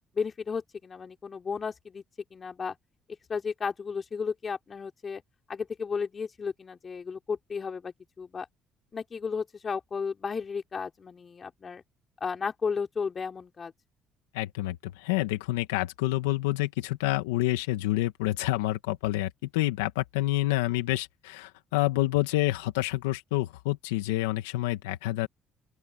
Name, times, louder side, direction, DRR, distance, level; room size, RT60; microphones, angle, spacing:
voice 1, 0.1-2.0 2.3-2.8 3.3-5.2 5.5-8.5 8.9-11.8 12.2-13.7, left 5 dB, 40° left, 4.0 m, -33 dB
voice 2, 14.3-25.3, left 17 dB, 90° left, 1.7 m, -28 dB
open air
hypercardioid pair, 60°, 0 cm